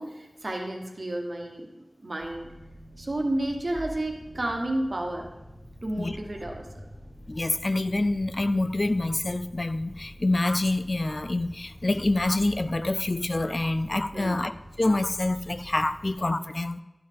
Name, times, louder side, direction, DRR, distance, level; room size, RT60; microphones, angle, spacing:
voice 1, 0.0-1.7 2.0-2.5 3.0-5.3 5.8-6.9 7.4-7.5 14.1-14.5, right 1 dB, 60° right, 1.2 m, -31 dB
sound 1, 2.2-16.2, equal, 10° left, 1.3 m, -47 dB
Ocean, 3.4-14.1, right 1 dB, 20° right, 1.5 m, -50 dB
voice 2, 7.3-14.5 14.8-16.8, left 2 dB, 50° left, 0.4 m, -26 dB
11.0 x 4.1 x 3.7 m
wide cardioid pair, 40°, 0 cm